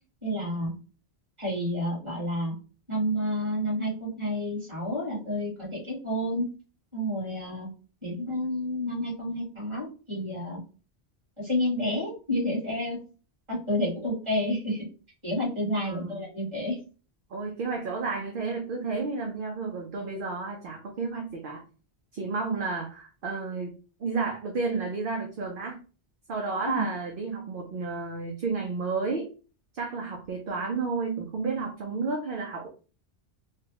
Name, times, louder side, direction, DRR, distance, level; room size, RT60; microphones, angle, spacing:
voice 1, 0.2-0.7 1.4-2.6 2.9-6.5 6.9-7.7 8.0-10.6 11.4-13.0 13.5-14.9 15.2-16.8 26.7-26.9, left 1 dB, 25° right, -5 dB, 1.8 m, -30 dB
voice 2, 15.8-16.2 17.3-21.6 22.1-23.7 24.0-25.8 26.3-29.3 29.7-32.7, right 4 dB, 60° right, 1 dB, 0.8 m, -31 dB
3.3 x 2.2 x 2.9 m, 0.35 s
omnidirectional pair, 1.1 m